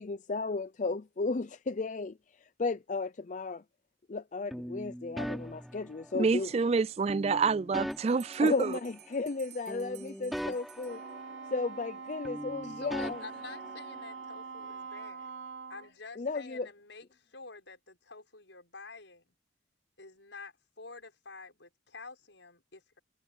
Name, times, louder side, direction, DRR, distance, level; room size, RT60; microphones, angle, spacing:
voice 1, 0.0-2.2 2.6-3.6 4.1-6.5 8.4-11.0 11.5-13.2 16.2-16.7, left 3 dB, 40° left, 0.5 m, -34 dB
sound 1, 4.5-6.5 7.1-9.4 9.7-12.0 12.2-14.3, equal, ahead, 3.2 m, -41 dB
voice 2, 6.1-8.8, right 4 dB, 35° right, 0.3 m, -27 dB
Bell, 7.9-11.5, right 13 dB, 60° right, 3.2 m, -55 dB
Wind instrument woodwind instrument, 10.9-15.9, right 5 dB, 80° right, 4.0 m, -44 dB
voice 3, 12.6-15.3 15.7-19.3 20.0-23.0, left 4 dB, 80° left, 6.0 m, -49 dB
head